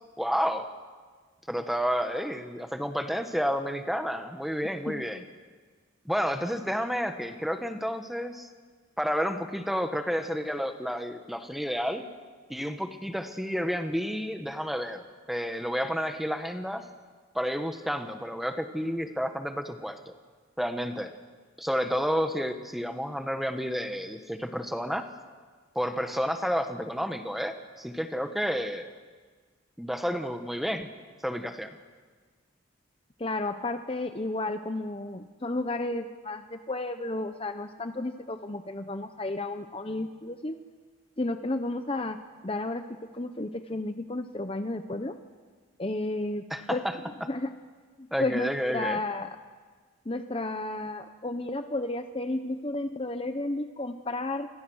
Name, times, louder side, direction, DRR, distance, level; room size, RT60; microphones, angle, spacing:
voice 1, 0.2-0.7 1.5-5.2 6.0-8.5 9.0-12.0 12.5-16.9 17.3-20.1 20.6-21.1 21.6-25.1 25.7-28.9 29.8-30.9 31.2-31.7 46.5-47.0 48.1-49.0, equal, ahead, 7 dB, 1.3 m, -30 dB
voice 2, 33.2-40.6 41.2-42.2 42.4-45.1 45.8-46.8 47.3-47.5 48.0-49.3 50.1-54.5, left 2 dB, 25° left, 8 dB, 0.8 m, -32 dB
29.0 x 23.5 x 6.4 m, 1.5 s
head